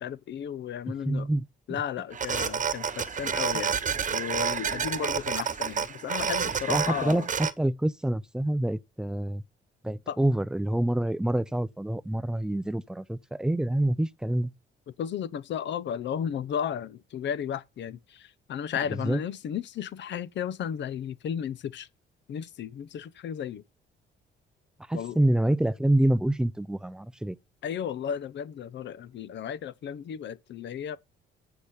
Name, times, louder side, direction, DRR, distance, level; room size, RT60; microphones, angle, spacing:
voice 1, 0.0-1.3 1.7-3.8 4.1-7.3 10.1-10.2 15.0-21.9 22.3-23.6 24.9-25.2 27.6-31.0, left 8 dB, 65° left, 0.8 m, -34 dB
voice 2, 0.9-1.4 1.7-1.8 6.7-9.4 9.8-14.5 19.0-19.2 24.9-27.4, right 1 dB, 5° right, 0.6 m, -27 dB
sound 1, 2.1-7.5, right 7 dB, 40° right, 0.9 m, -29 dB
8.1 x 5.8 x 7.0 m
cardioid pair, 90°, 20 cm